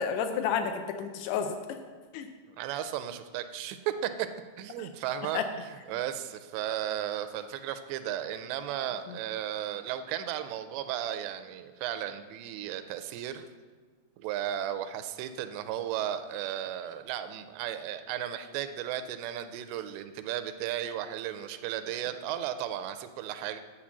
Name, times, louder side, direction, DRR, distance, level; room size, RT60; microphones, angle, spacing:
voice 1, 0.0-1.8 2.1-2.3 4.8-4.9 5.3-5.5 9.1-9.2, left 7 dB, 80° left, 7 dB, 2.5 m, -31 dB
voice 2, 2.6-4.3 4.6-5.4 5.9-13.4 14.2-23.6, right 11 dB, 85° right, 10 dB, 2.7 m, -35 dB
10.0 x 4.6 x 7.3 m, 1.5 s
omnidirectional pair, 4.9 m